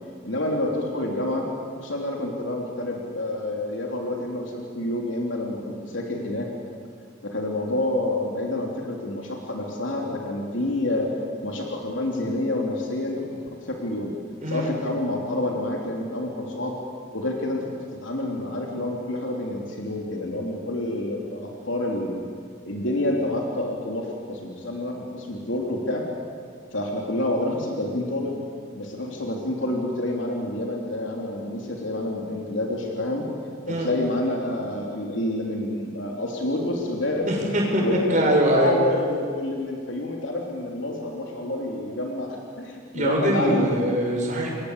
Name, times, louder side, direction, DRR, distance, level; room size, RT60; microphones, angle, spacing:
voice 1, 0.2-1.5 1.7-6.5 7.2-11.1 11.4-13.2 13.6-14.1 14.5-16.7 17.1-17.7 18.0-22.2 22.6-26.0 26.7-28.4 28.7-33.2 33.7-37.3 37.8-43.8, left 1 dB, 65° left, 0 dB, 3.4 m, -28 dB
voice 2, 37.3-37.8 38.1-38.7 42.9-44.5, equal, 35° right, -1 dB, 6.5 m, -22 dB
28.5 x 22.0 x 8.3 m, 2.1 s
head